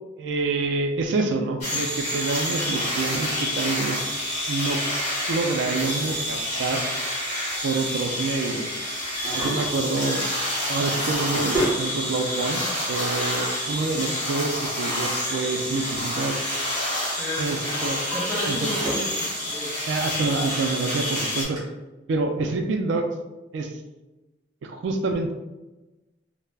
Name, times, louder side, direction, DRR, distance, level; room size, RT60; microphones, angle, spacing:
voice 1, 0.2-4.0 4.5-4.8 5.3-6.8 7.6-8.7 9.2-10.3 10.7-16.4 17.4-18.0 18.5-18.7 19.9-21.6 22.1-23.1 23.5-23.8 24.6-25.3, right 3 dB, 75° right, 5 dB, 0.3 m, -27 dB
sound 1, 1.6-21.4, left 1 dB, 35° left, 1.1 m, -28 dB
Drawer open or close, 9.0-10.2 10.9-11.8 12.9-13.0 14.8-16.3 16.6-17.0 17.5-19.2 19.6-19.7 20.4-20.5 20.8-20.9 21.6-21.7, right 1 dB, 20° right, 0.8 m, -32 dB
voice 2, 17.2-19.8, left 1 dB, 15° left, -6 dB, 0.6 m, -33 dB
2.3 x 2.0 x 3.3 m, 1.1 s
head